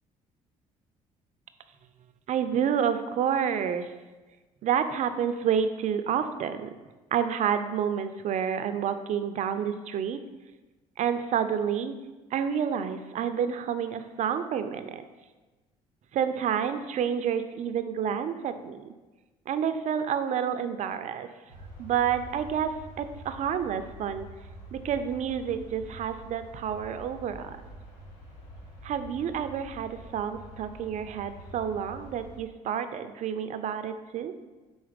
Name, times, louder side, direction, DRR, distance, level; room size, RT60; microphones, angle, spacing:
voice 1, 2.3-3.9 4.6-6.7 7.1-10.2 11.0-11.9 12.3-15.0 16.1-18.9 19.5-21.3 21.8-24.3 24.7-27.6 28.8-34.3, right 8 dB, 55° right, 10 dB, 0.5 m, -29 dB
sound 1, 21.5-32.4, right 1 dB, 90° left, 1.2 m, -46 dB
4.8 x 3.9 x 5.1 m, 1.2 s
supercardioid pair, 70°, 15 cm